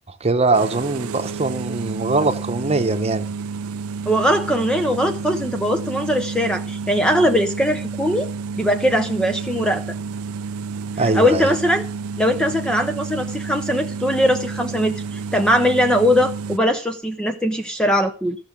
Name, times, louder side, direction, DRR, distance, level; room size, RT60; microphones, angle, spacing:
voice 1, 0.1-3.3 11.0-11.6, right 3 dB, 30° right, 1.0 m, -22 dB
sound 1, 0.5-16.6, right 5 dB, 85° right, 0.5 m, -30 dB
voice 2, 4.1-8.3 8.6-10.0 11.1-11.8 12.2-18.4, equal, 5° left, 0.6 m, -20 dB
14.0 x 6.3 x 6.1 m
head